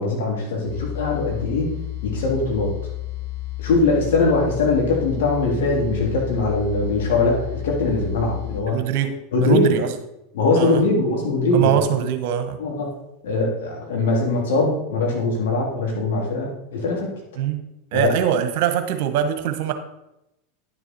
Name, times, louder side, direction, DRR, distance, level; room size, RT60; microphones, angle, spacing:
voice 1, 0.0-1.7 2.0-2.7 3.6-8.8 9.3-9.8 10.3-12.1 12.6-12.9 13.2-17.1 17.9-18.1, left 3 dB, 70° left, -1 dB, 3.4 m, -21 dB
sound 1, 0.6-8.6, left 17 dB, 35° left, 2.2 m, -31 dB
voice 2, 8.7-9.1 9.4-9.9 10.5-10.8 11.5-12.6 17.4-17.6 17.9-19.7, right 10 dB, 60° right, 8 dB, 1.3 m, -22 dB
10.5 x 7.0 x 4.5 m, 0.87 s
hypercardioid pair, 95°, 0 cm